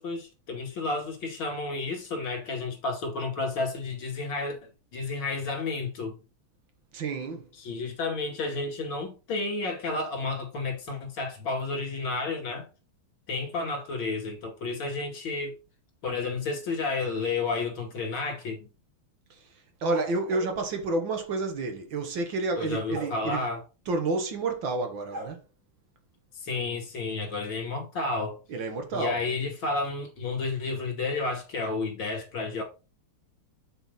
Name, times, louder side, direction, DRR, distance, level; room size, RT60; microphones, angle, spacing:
voice 1, 0.0-6.2 7.6-12.7 13.3-15.6 16.0-18.7 22.6-23.6 26.4-28.4 28.9-32.6, left 3 dB, 65° left, 3.1 m, -31 dB
voice 2, 6.9-7.5 19.3-19.5 19.8-23.4 23.9-25.4 28.5-29.2, right 3 dB, 65° right, 1.9 m, -30 dB
sound 1, 19.9-20.6 22.9-23.2 25.1-25.3, right 3 dB, 45° right, 2.5 m, -37 dB
8.4 x 4.4 x 4.0 m
omnidirectional pair, 2.3 m